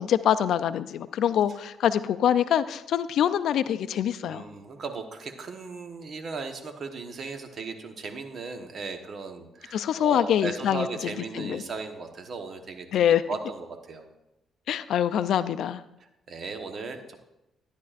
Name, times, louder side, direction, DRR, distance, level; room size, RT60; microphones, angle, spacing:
voice 1, 0.0-4.4 9.7-10.9 11.3-11.6 12.9-13.2 14.7-15.8, left 10 dB, 75° left, 12 dB, 0.4 m, -24 dB
voice 2, 4.2-12.9 13.3-14.1 16.3-17.2, right 4 dB, 50° right, 6 dB, 1.1 m, -37 dB
12.5 x 10.5 x 2.5 m, 0.92 s
cardioid pair, 90°, 0 cm